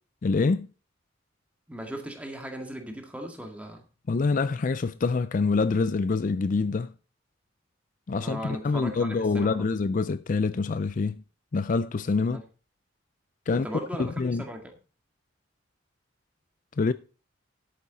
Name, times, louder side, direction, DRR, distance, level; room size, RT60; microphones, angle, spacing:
voice 1, 0.2-0.7 4.1-6.9 8.1-11.2 11.5-12.4 13.5-13.7 14.0-14.4 16.8-16.9, left 4 dB, 40° left, 0.4 m, -26 dB
voice 2, 1.7-3.8 8.1-9.7 12.3-12.4 13.5-14.7, equal, 5° right, 2.0 m, -37 dB
11.5 x 8.6 x 4.1 m
head